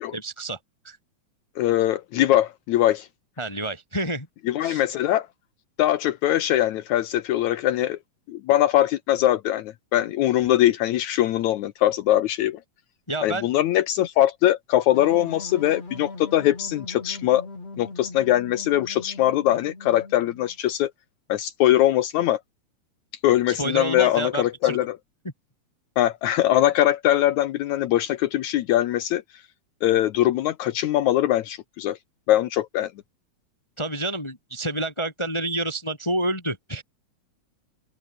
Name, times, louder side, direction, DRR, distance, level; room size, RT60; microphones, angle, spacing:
voice 1, 0.1-0.6 0.8-1.0 3.4-4.3 4.6-4.8 13.1-13.5 23.5-24.8 33.8-36.8, right 1 dB, 10° left, 1.6 m, -29 dB
voice 2, 1.6-3.1 4.5-5.3 5.8-8.0 8.3-12.6 13.2-17.5 17.8-20.9 21.3-22.4 23.2-25.0 26.0-29.2 29.8-32.0 32.3-32.9, left 13 dB, 75° left, 2.2 m, -22 dB
sound 1, 14.9-20.6, left 3 dB, 55° left, 8.5 m, -40 dB
open air
omnidirectional pair, 3.5 m